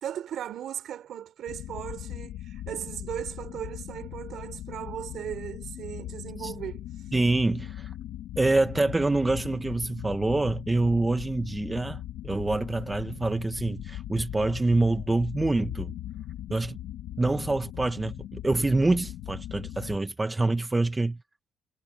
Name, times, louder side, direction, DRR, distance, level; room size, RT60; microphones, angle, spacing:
voice 1, 0.0-6.8, right 10 dB, 65° right, 3.4 m, -37 dB
sound 1, 1.5-20.0, left 13 dB, 80° left, 1.5 m, -39 dB
voice 2, 7.1-7.9 8.4-16.0 16.5-16.8 17.2-21.2, right 2 dB, 15° right, 0.9 m, -26 dB
cardioid pair, 120°, 0 cm